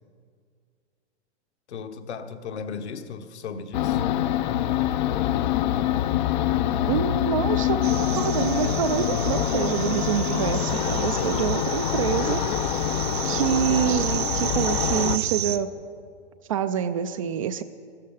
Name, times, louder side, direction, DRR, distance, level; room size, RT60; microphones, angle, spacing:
voice 1, 1.7-4.0, left 5 dB, 70° left, 7 dB, 1.3 m, -36 dB
sound 1, 3.7-15.2, left 11 dB, 40° left, 0.5 m, -25 dB
voice 2, 6.9-12.4 13.2-15.7 16.5-17.6, right 10 dB, 30° right, 12 dB, 0.4 m, -26 dB
sound 2, 7.8-15.6, right 10 dB, 60° right, 0.8 m, -32 dB
15.0 x 13.0 x 5.5 m, 2.2 s
hypercardioid pair, 135°, 35 cm